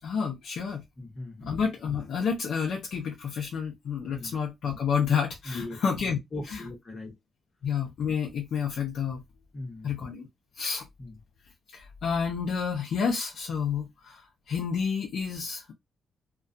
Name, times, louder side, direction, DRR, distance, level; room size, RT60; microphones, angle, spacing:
voice 1, 0.0-0.8 1.4-6.2 6.4-6.7 7.6-9.2 9.8-10.3 10.6-10.9 11.7-15.7, left 6 dB, 75° left, 0.6 m, -30 dB
voice 2, 1.0-1.5 4.1-4.3 5.5-5.8 6.3-7.1 9.5-9.9 11.0-11.2, left 2 dB, 30° left, 0.9 m, -39 dB
2.2 x 2.2 x 2.5 m
cardioid pair, 105°, 0 cm